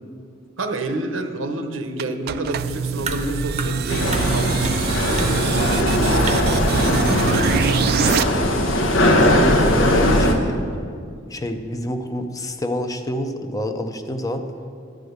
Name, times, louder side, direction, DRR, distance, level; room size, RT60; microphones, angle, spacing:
voice 1, 0.6-7.5 9.3-10.2, right 2 dB, 85° right, 6 dB, 0.9 m, -30 dB
sound 1, 2.0-8.2, right 6 dB, 55° right, 0.3 m, -24 dB
sound 2, 3.0-10.4, right 1 dB, 35° right, 0.7 m, -31 dB
sound 3, 3.9-10.3, left 1 dB, 85° left, 1.0 m, -19 dB
voice 2, 9.1-10.6 11.3-14.4, left 1 dB, 20° left, 6 dB, 0.6 m, -27 dB
12.0 x 5.0 x 7.9 m, 2.3 s
head